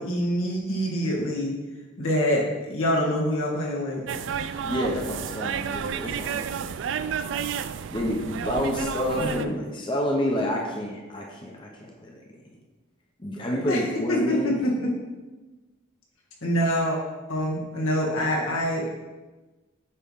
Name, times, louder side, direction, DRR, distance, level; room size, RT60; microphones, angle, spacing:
voice 1, 0.0-1.5 2.0-4.0 9.2-9.5 13.7-13.8 14.1-14.9 16.4-17.0 17.3-18.9, equal, 90° left, -3 dB, 1.8 m, -25 dB
sound 1, 4.1-9.5, right 7 dB, 65° right, 0.3 m, -31 dB
voice 2, 4.6-6.4 7.9-12.2 13.2-14.5, left 1 dB, 25° left, -1 dB, 0.8 m, -29 dB
8.4 x 3.3 x 5.5 m, 1.2 s
head